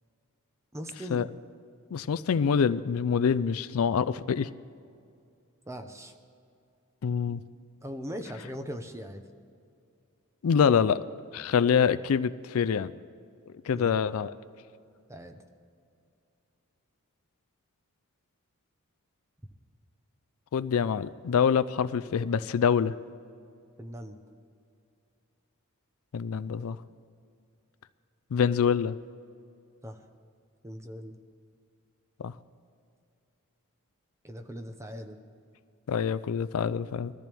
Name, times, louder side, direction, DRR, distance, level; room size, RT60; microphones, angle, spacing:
voice 1, 0.7-1.3 5.7-6.1 7.8-9.2 13.7-14.0 15.1-15.4 23.8-24.2 29.8-30.0 30.6-31.2 34.2-35.2, equal, 15° right, 6 dB, 0.8 m, -40 dB
voice 2, 1.9-4.5 7.0-7.4 10.4-11.0 11.3-12.9 13.6-14.3 20.5-22.9 26.1-26.8 28.3-28.9 32.2-32.3 35.9-37.1, left 7 dB, 70° left, 15 dB, 0.4 m, -25 dB
21.0 x 14.0 x 3.5 m, 2.4 s
head